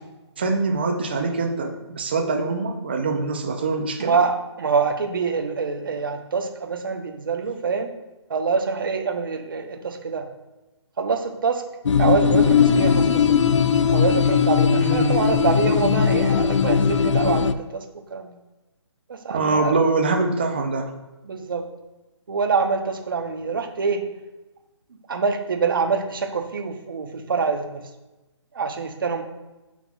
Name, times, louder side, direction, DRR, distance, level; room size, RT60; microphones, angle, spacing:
voice 1, 0.4-4.2 14.7-15.2 19.3-20.9, right 3 dB, 20° right, 3 dB, 0.5 m, -24 dB
voice 2, 4.0-7.9 8.3-10.3 11.0-11.6 12.0-13.4 13.9-17.8 18.1-18.3 19.1-19.8 21.2-21.7 22.3-24.1 25.1-27.9 28.5-29.2, right 5 dB, 45° right, 4 dB, 0.8 m, -25 dB
sound 1, 11.9-17.5, left 6 dB, 90° left, 0.4 m, -19 dB
7.4 x 5.8 x 2.3 m, 1.1 s
hypercardioid pair, 175°, 15 cm